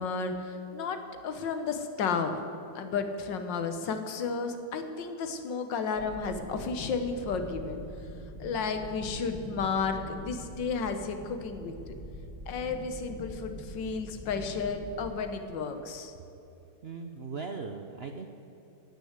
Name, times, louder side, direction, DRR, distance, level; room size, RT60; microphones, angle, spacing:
voice 1, 0.0-2.4 2.8-7.8 8.4-11.9 12.5-16.1, left 5 dB, 85° left, 7 dB, 1.8 m, -32 dB
sound 1, 5.9-15.1, right 1 dB, 45° right, 2.6 m, -44 dB
voice 2, 16.8-18.3, right 4 dB, 60° right, 5 dB, 0.6 m, -38 dB
17.0 x 6.6 x 8.1 m, 2.9 s
omnidirectional pair, 1.9 m